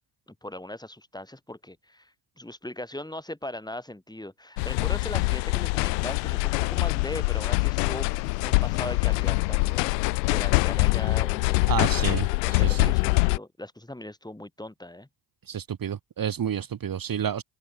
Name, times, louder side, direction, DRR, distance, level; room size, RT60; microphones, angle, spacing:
voice 1, 0.4-12.1 12.4-15.1, left 1 dB, 10° left, 7.1 m, -39 dB
sound 1, 4.6-13.4, left 29 dB, 80° left, 2.6 m, -24 dB
voice 2, 11.7-12.9 15.5-17.4, right 8 dB, 45° right, 2.3 m, -30 dB
hypercardioid pair, 60°, 49 cm